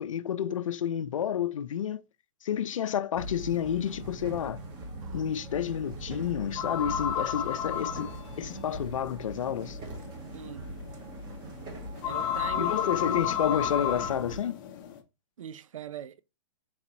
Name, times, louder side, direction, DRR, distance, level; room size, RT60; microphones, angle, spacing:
voice 1, 0.0-2.0 2.4-4.6 5.1-8.1 8.4-9.8 12.6-14.6, left 9 dB, 80° left, 0.4 m, -30 dB
sound 1, 3.1-14.4, right 1 dB, 25° right, 1.1 m, -41 dB
sound 2, 6.6-15.0, left 9 dB, 40° left, 0.6 m, -33 dB
voice 2, 12.0-12.7 15.4-16.2, right 9 dB, 85° right, 0.4 m, -41 dB
3.9 x 3.6 x 3.0 m
hypercardioid pair, 140°, 16 cm